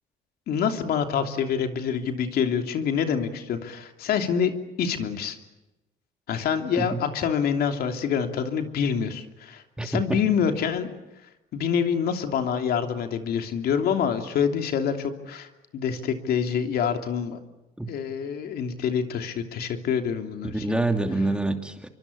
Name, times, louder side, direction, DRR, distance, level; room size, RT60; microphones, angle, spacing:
voice 1, 0.5-4.5 4.8-5.4 6.3-10.9 11.5-17.4 17.9-20.9, left 7 dB, 65° left, 6 dB, 3.0 m, -26 dB
voice 2, 9.8-10.2 17.8-17.9 20.5-21.9, right 2 dB, 5° right, 6 dB, 2.7 m, -26 dB
27.0 x 24.5 x 8.5 m, 0.97 s
cardioid pair, 110°, 17 cm